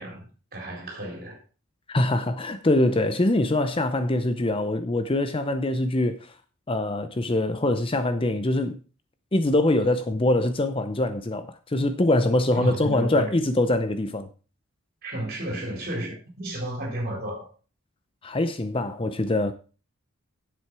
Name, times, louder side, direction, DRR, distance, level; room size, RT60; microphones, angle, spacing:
voice 1, 0.0-1.4 12.5-13.3 15.0-17.5, right 1 dB, 45° right, 4.0 m, -32 dB
voice 2, 1.9-6.3 6.7-8.8 9.3-14.3 18.2-19.5, left 1 dB, 25° left, 0.6 m, -24 dB
9.8 x 7.6 x 4.7 m
head